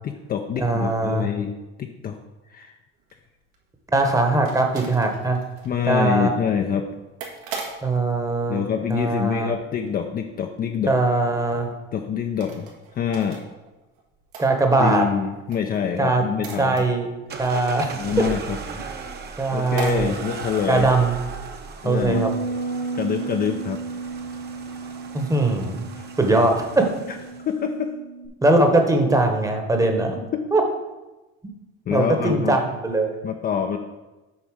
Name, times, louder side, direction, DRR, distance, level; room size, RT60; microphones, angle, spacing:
voice 1, 0.0-1.5 1.8-2.2 2.5-2.7 5.6-6.9 8.5-10.9 11.9-13.4 14.8-16.7 17.9-18.6 19.5-20.9 21.8-22.3 23.0-23.8 26.0-26.1 27.5-27.9 31.9-32.6 33.2-33.8, left 7 dB, 30° left, 4 dB, 0.5 m, -26 dB
voice 2, 0.6-1.3 3.9-5.4 5.8-6.3 7.8-8.6 8.9-9.5 10.9-11.7 14.4-15.1 16.0-16.2 16.6-17.1 17.4-18.2 18.7-18.8 19.4-20.1 20.7-21.2 21.8-22.3 25.1-25.8 26.2-26.6 28.4-30.2 30.5-30.6 31.9-33.2, right 2 dB, 10° right, 4 dB, 1.0 m, -21 dB
sound 1, 3.0-9.6 9.9-10.3 10.6-10.7 11.0-11.1 11.4-11.5 12.3-13.4 13.7-15.1 15.3-18.6 18.9-19.0 19.3-19.4 19.7-20.0, right 4 dB, 80° right, 1.7 m, -39 dB
sound 2, 17.3-27.5, right 5 dB, 35° right, 0.9 m, -37 dB
Bass guitar, 22.0-28.3, right 3 dB, 60° left, 1.4 m, -32 dB
7.1 x 4.1 x 6.4 m, 1.1 s
supercardioid pair, 120°, 30 cm